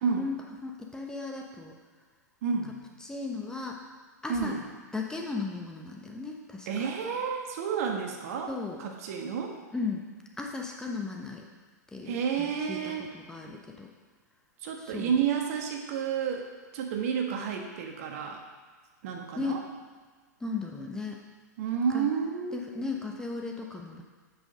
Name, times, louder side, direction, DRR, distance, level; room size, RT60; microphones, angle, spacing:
voice 1, 0.6-1.7 3.0-3.8 4.2-4.5 4.9-6.9 8.5-8.8 9.7-10.1 10.4-11.4 11.9-13.9 14.8-15.2 19.4-19.6 20.4-21.2 21.9-22.1 22.5-24.0, left 4 dB, 5° left, 0 dB, 1.0 m, -36 dB
voice 2, 2.4-2.8 4.3-4.6 6.7-9.5 12.0-13.1 14.6-16.5 16.7-18.4 19.0-19.6 21.6-22.8, right 6 dB, 55° right, 2 dB, 1.4 m, -30 dB
8.1 x 6.1 x 5.0 m, 1.5 s
figure-of-eight pair, 105°, 10 cm